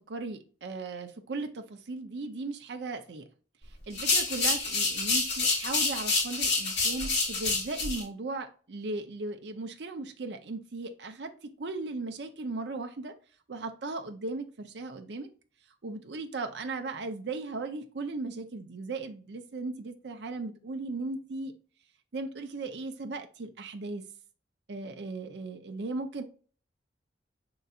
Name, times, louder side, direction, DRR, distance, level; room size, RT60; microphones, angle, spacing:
voice 1, 0.1-3.3 3.7-13.2 13.5-15.3 15.8-21.5 22.1-24.1 24.7-26.2, right 3 dB, 70° right, 5 dB, 0.6 m, -37 dB
sound 1, 3.9-8.0, left 3 dB, 65° left, 2.2 m, -28 dB
5.5 x 3.8 x 2.4 m, 0.39 s
head